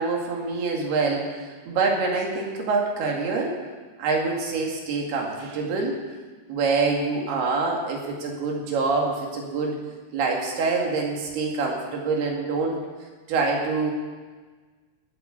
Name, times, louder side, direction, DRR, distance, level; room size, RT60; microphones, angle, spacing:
voice 1, 0.0-3.5 4.0-6.0 6.5-9.8 10.1-12.8 13.3-13.9, right 4 dB, 75° right, 0 dB, 4.2 m, -25 dB
18.0 x 9.1 x 7.1 m, 1.4 s
omnidirectional pair, 4.7 m